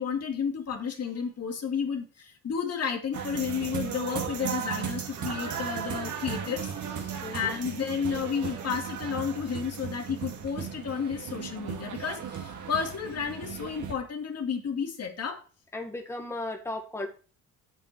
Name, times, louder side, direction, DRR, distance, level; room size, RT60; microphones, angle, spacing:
voice 1, 0.0-15.4, left 7 dB, 45° left, 4 dB, 2.2 m, -32 dB
sound 1, 3.1-13.9, right 7 dB, 55° right, 2.3 m, -36 dB
voice 2, 7.2-7.6 15.7-17.1, left 2 dB, 5° left, 3 dB, 1.7 m, -35 dB
8.2 x 7.7 x 4.6 m, 0.37 s
cardioid pair, 90°, 36 cm